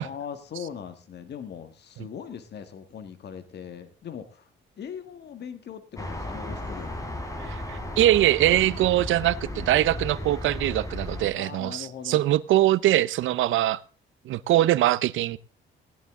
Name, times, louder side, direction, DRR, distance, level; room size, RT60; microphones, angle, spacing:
voice 1, 0.0-4.5 4.8-7.1 11.3-12.2, left 7 dB, 60° left, 1.7 m, -40 dB
sound 1, 6.0-11.3, left 1 dB, 15° left, 3.3 m, -35 dB
voice 2, 7.5-13.8 14.3-15.4, right 14 dB, 80° right, 0.7 m, -22 dB
16.5 x 11.0 x 3.6 m
cardioid pair, 90°, 20 cm